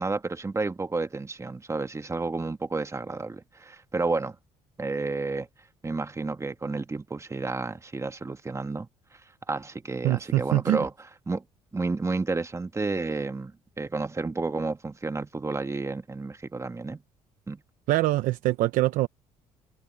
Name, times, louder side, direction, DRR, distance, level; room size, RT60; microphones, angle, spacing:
voice 1, 0.0-4.4 4.8-5.5 5.8-9.2 9.5-10.9 11.3-11.4 11.7-17.0 17.5-17.6, right 3 dB, 20° right, 1.6 m, -31 dB
voice 2, 10.0-10.9 17.9-19.1, right 16 dB, 75° right, 0.8 m, -24 dB
supercardioid pair, 75°, 14 cm